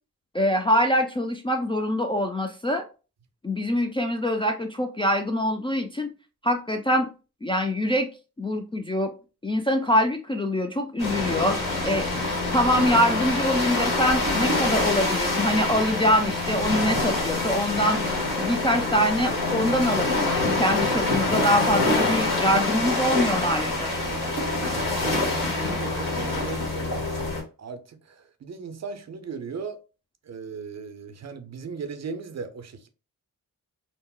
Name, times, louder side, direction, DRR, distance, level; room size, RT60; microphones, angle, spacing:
voice 1, 0.3-2.8 3.4-6.1 6.4-7.1 7.4-8.1 8.4-9.1 9.4-11.6 11.9-12.1 12.5-18.0 18.4-23.9, equal, 15° left, 0.3 m, -24 dB
sound 1, 11.0-27.4, left 2 dB, 60° left, 1.4 m, -25 dB
voice 2, 25.1-29.8 30.2-32.9, right 5 dB, 45° right, 0.5 m, -38 dB
3.5 x 2.0 x 2.2 m
cardioid pair, 55°, 37 cm